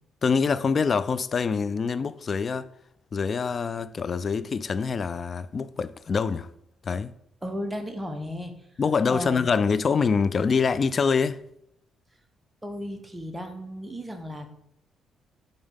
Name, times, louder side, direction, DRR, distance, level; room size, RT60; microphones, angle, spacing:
voice 1, 0.2-2.7 3.1-6.5 6.8-7.1 8.8-11.4, left 5 dB, 45° left, 0.3 m, -25 dB
voice 2, 7.4-8.5 9.1-9.5 12.6-14.5, equal, 10° right, 1.0 m, -34 dB
5.2 x 4.0 x 5.4 m
cardioid pair, 90°, 0 cm